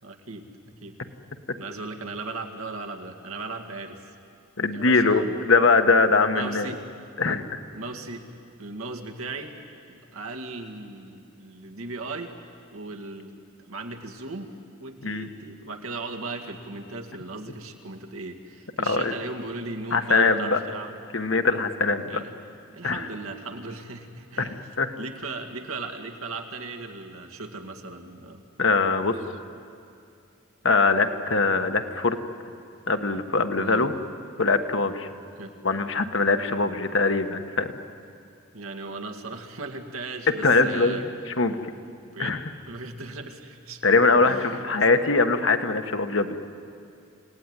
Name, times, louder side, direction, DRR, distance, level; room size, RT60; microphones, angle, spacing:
voice 1, 0.0-0.9 1.6-4.0 4.7-5.4 6.3-6.8 7.7-8.3 8.6-9.5 9.9-12.3 12.7-13.3 13.6-14.5 14.8-21.1 22.0-22.4 22.7-24.6 25.0-28.4 33.6-33.9 35.4-35.6 38.5-41.0 42.0-42.4 42.7-43.9 44.2-44.8, right 3 dB, 85° right, 3 dB, 2.2 m, -37 dB
voice 2, 4.6-6.7 7.2-7.5 15.0-15.3 18.8-19.1 19.9-20.6 21.1-22.2 22.8-23.1 24.4-24.9 28.6-29.1 30.6-32.2 32.9-33.9 34.4-35.1 35.6-37.7 40.4-41.6 42.2-42.4 43.8-46.4, left 3 dB, 60° left, 7 dB, 1.3 m, -22 dB
29.0 x 17.5 x 9.8 m, 2.5 s
head